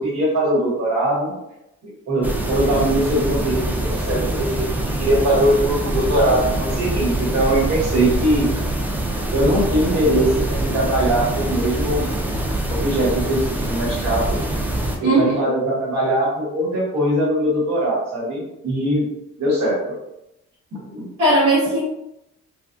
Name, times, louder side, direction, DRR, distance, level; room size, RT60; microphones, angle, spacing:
voice 1, 0.0-1.3 1.8-8.5 9.3-12.0 12.7-14.4 15.0-19.1 19.4-20.0 20.7-21.1, right 1 dB, 60° right, -4 dB, 1.2 m, -21 dB
sound 1, 2.2-15.0, right 1 dB, 5° right, 0.3 m, -24 dB
voice 2, 15.0-15.4 21.2-21.8, right 1 dB, 80° right, -8 dB, 0.9 m, -17 dB
2.2 x 2.2 x 2.5 m, 0.87 s
cardioid pair, 90°, 30 cm